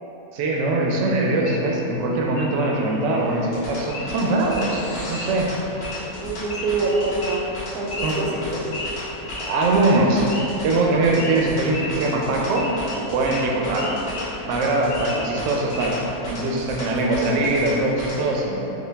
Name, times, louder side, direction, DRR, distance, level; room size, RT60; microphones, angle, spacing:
voice 1, 0.3-5.5 8.0-8.2 9.4-10.3 10.6-12.7 13.1-13.8 14.5-18.7, right 2 dB, 65° right, -1 dB, 0.8 m, -22 dB
Wild animals / Idling, 1.4-16.1, left 2 dB, 70° left, 1.1 m, -36 dB
sound 1, 2.2-2.5 2.7-5.4, left 1 dB, 50° left, 0.9 m, -42 dB
sound 2, 3.4-18.2, left 1 dB, 85° left, 1.4 m, -36 dB
voice 2, 6.2-7.5 7.7-8.7 13.7-14.0 17.2-17.5, right 3 dB, 90° right, -2 dB, 1.1 m, -26 dB
5.1 x 2.2 x 3.3 m, 3.0 s
omnidirectional pair, 1.6 m